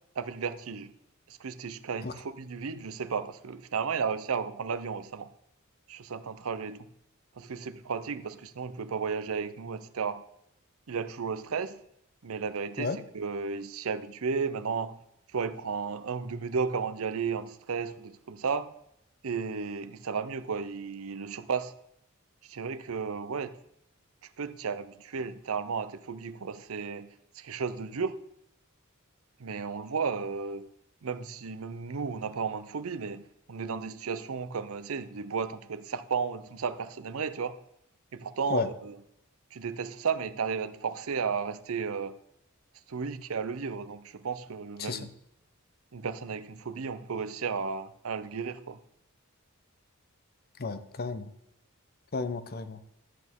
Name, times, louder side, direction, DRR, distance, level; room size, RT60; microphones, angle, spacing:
voice 1, 0.2-0.9 1.3-5.3 5.9-6.9 7.4-10.2 10.9-11.8 12.2-15.0 15.3-18.7 19.2-21.7 22.4-23.6 24.4-27.1 27.3-28.2 29.4-30.7 31.0-37.6 38.1-39.0 39.5-42.2 42.9-45.1 45.9-48.8, right 5 dB, 75° right, 0.6 m, -34 dB
voice 2, 50.6-51.3 52.1-52.8, left 4 dB, 45° left, 0.7 m, -32 dB
13.0 x 8.4 x 3.6 m
head